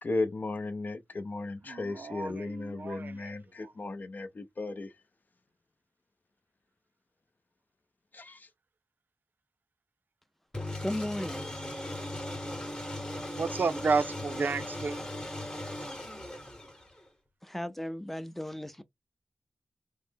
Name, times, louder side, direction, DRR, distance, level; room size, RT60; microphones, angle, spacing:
voice 1, 0.0-4.9 8.1-8.5, left 2 dB, 60° left, 0.5 m, -35 dB
voice 2, 1.7-3.1 13.3-15.0, right 4 dB, 70° right, 0.4 m, -31 dB
sound 1, 10.5-17.1, left 1 dB, 25° left, 0.9 m, -38 dB
voice 3, 10.8-11.5 17.4-18.8, left 1 dB, 5° left, 0.4 m, -35 dB
3.2 x 2.0 x 3.3 m
wide cardioid pair, 100°, 3 cm